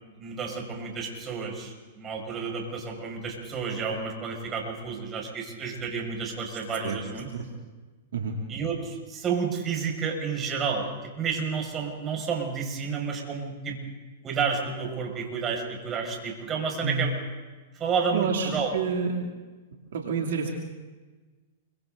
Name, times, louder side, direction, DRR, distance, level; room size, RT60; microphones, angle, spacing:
voice 1, 0.0-7.3 8.5-13.8 14.2-17.1 17.7-18.7, right 5 dB, 25° right, 1 dB, 6.6 m, -31 dB
voice 2, 18.1-19.2 19.9-20.5, right 5 dB, 70° right, 0 dB, 3.0 m, -28 dB
28.0 x 25.0 x 4.1 m, 1.3 s
hypercardioid pair, 110°, 0 cm